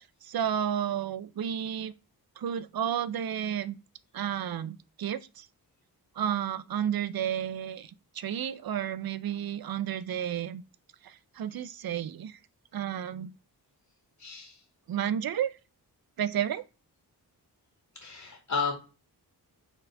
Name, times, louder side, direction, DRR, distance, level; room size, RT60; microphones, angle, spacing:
voice 1, 0.2-1.9 2.4-3.8 4.1-5.5 6.2-10.6 11.0-12.4 12.7-13.3 14.9-15.6 16.2-16.6, right 9 dB, 65° right, 0.6 m, -32 dB
voice 2, 14.2-14.6 17.9-18.7, left 5 dB, 50° left, 2.0 m, -33 dB
5.3 x 4.2 x 4.7 m
wide cardioid pair, 95°, 39 cm